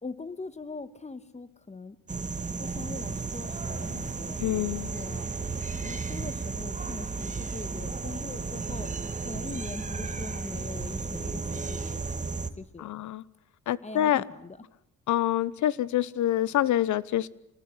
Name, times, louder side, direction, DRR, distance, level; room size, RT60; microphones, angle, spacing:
voice 1, 0.0-2.0 2.6-4.4 4.9-5.3 5.8-8.9 9.2-12.9 13.8-14.6, left 3 dB, 20° left, 14 dB, 1.7 m, -41 dB
sound 1, 2.1-12.5, right 4 dB, 25° right, 1.7 m, -34 dB
voice 2, 4.4-4.9 12.8-13.2 13.7-14.2 15.1-17.3, left 12 dB, 70° left, 20 dB, 1.0 m, -26 dB
25.5 x 19.0 x 9.7 m, 0.83 s
cardioid pair, 90°, 30 cm